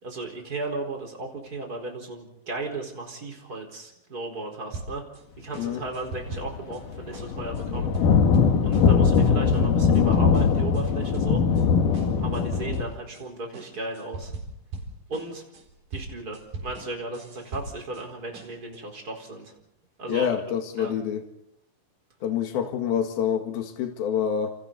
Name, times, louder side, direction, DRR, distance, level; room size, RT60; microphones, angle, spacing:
voice 1, 0.0-5.0 5.4-8.1 8.6-11.4 12.2-14.3 15.1-15.4 15.9-19.5 20.0-20.4 20.8-20.9, right 2 dB, 25° right, 4.8 m, -35 dB
sound 1, 4.7-5.2 5.5-6.8 7.1-10.8 11.1-11.6 11.9-13.2 13.5-18.0 18.3-18.8, right 2 dB, 70° right, 5.7 m, -39 dB
sound 2, 6.2-6.3 6.6-12.8, left 6 dB, 65° left, 3.3 m, -21 dB
voice 2, 20.1-21.2 22.2-24.6, left 8 dB, 85° left, 3.6 m, -27 dB
30.0 x 28.0 x 4.1 m
omnidirectional pair, 4.2 m